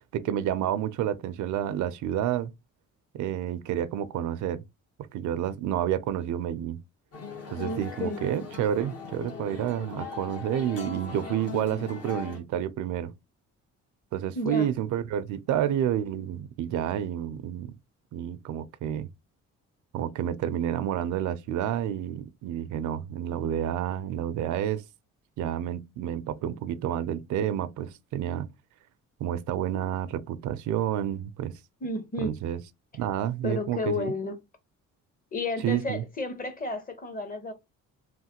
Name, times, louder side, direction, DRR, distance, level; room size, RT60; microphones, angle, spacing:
voice 1, 0.1-2.5 3.1-4.6 5.1-6.8 7.5-13.1 14.1-17.7 18.1-19.1 19.9-24.8 25.4-28.5 29.2-31.5 32.2-32.6 33.0-34.1 35.6-36.0, right 10 dB, 75° right, 0.5 m, -29 dB
sound 1, 7.1-12.4, left 6 dB, 55° left, 1.1 m, -40 dB
voice 2, 7.6-8.2 14.3-14.7 31.8-32.3 33.4-34.4 35.3-37.5, left 2 dB, 30° left, 0.8 m, -32 dB
3.1 x 2.1 x 2.8 m
cardioid pair, 90°, 30 cm